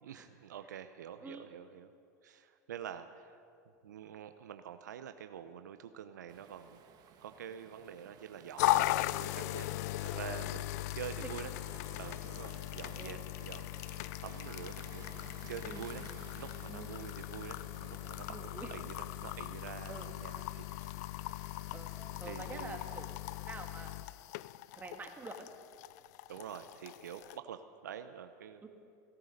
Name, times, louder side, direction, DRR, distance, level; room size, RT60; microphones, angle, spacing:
voice 1, 0.0-1.9 2.2-3.4 3.8-6.8 7.2-8.9 9.2-9.7 10.0-11.5 12.0-16.0 16.4-20.9 22.2-22.8 26.3-28.7, right 9 dB, 85° right, 9 dB, 0.7 m, -47 dB
Waves surf, 6.3-23.1, right 8 dB, 45° right, 1.4 m, -57 dB
sound 1, 8.6-27.4, left 16 dB, 65° left, 0.4 m, -38 dB
voice 2, 15.6-15.9 16.7-16.9 18.3-18.8 19.9-20.1 21.7-23.1 23.4-24.4 24.7-25.5 28.6-28.7, right 4 dB, 20° right, 4 dB, 2.0 m, -48 dB
17.0 x 12.5 x 6.5 m, 2.4 s
hypercardioid pair, 95°, 9 cm